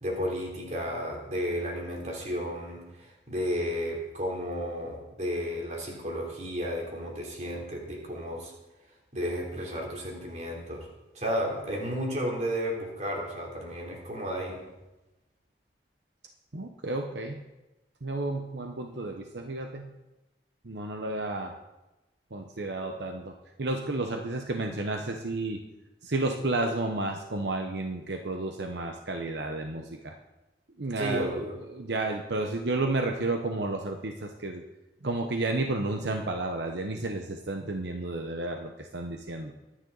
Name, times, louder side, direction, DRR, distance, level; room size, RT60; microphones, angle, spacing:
voice 1, 0.0-8.5 9.1-10.9 11.1-14.6 31.0-31.6, equal, 40° right, -1 dB, 3.5 m, -33 dB
voice 2, 16.5-17.4 18.0-19.9 20.6-21.5 22.3-23.3 23.6-25.6 26.0-30.1 30.8-31.4 31.7-34.6 35.0-39.5, right 2 dB, 75° right, 4 dB, 1.0 m, -31 dB
23.0 x 9.6 x 4.0 m, 1.0 s
head